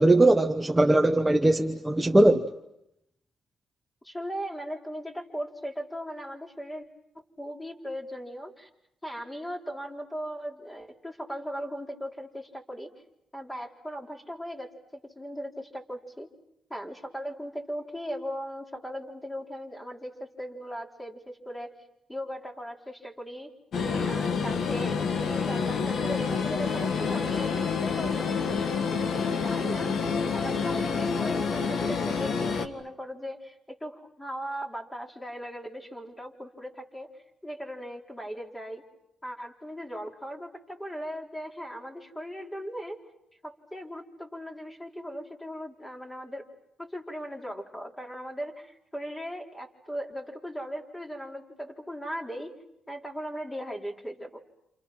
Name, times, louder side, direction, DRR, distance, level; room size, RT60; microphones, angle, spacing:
voice 1, 0.0-2.5, right 1 dB, 10° right, 1.2 m, -20 dB
voice 2, 4.0-6.9 7.1-8.7 9.0-12.9 13.3-14.7 15.1-16.3 16.7-21.7 22.1-23.5 24.0-28.6 29.1-37.1 37.4-38.8 39.2-43.0 43.4-46.5 46.8-52.5 52.9-54.4, equal, 10° left, 4.2 m, -38 dB
sound 1, 23.7-32.7, left 5 dB, 65° left, 1.9 m, -28 dB
29.0 x 28.0 x 6.1 m
cardioid pair, 70°, 0 cm